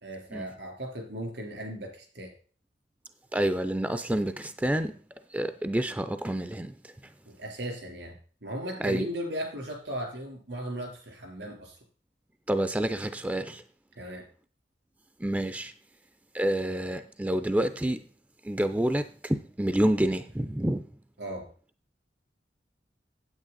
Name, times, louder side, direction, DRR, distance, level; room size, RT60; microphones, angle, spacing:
voice 1, 0.0-2.3 7.3-8.2 8.4-11.8 14.0-14.3 21.2-21.5, right 1 dB, 80° right, 3.5 m, -37 dB
voice 2, 3.3-4.9 5.3-6.7 8.8-9.1 12.5-13.6 15.2-15.7 16.3-18.0 18.4-20.8, right 1 dB, 10° right, 0.4 m, -28 dB
9.0 x 8.3 x 4.0 m
head